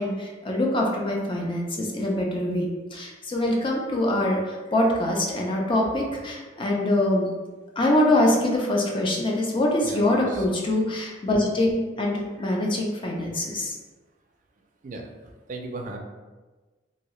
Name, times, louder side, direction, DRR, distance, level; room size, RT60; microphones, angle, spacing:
voice 1, 0.0-7.3 7.8-13.7, left 1 dB, 30° left, -1 dB, 0.5 m, -24 dB
voice 2, 9.8-10.4 14.8-15.1 15.5-16.0, right 2 dB, 45° right, 2 dB, 0.4 m, -36 dB
2.7 x 2.7 x 3.0 m, 1.3 s
head